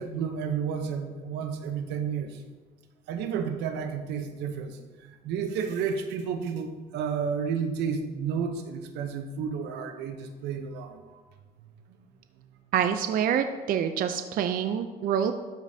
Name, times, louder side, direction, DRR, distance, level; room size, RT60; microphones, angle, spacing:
voice 1, 0.0-2.4 3.1-11.2 11.6-12.0 12.4-12.5, right 6 dB, 85° right, 7 dB, 0.8 m, -32 dB
voice 2, 12.7-15.3, right 8 dB, 55° right, 8 dB, 0.5 m, -26 dB
12.5 x 5.2 x 2.7 m, 1.4 s
cardioid pair, 110°, 17 cm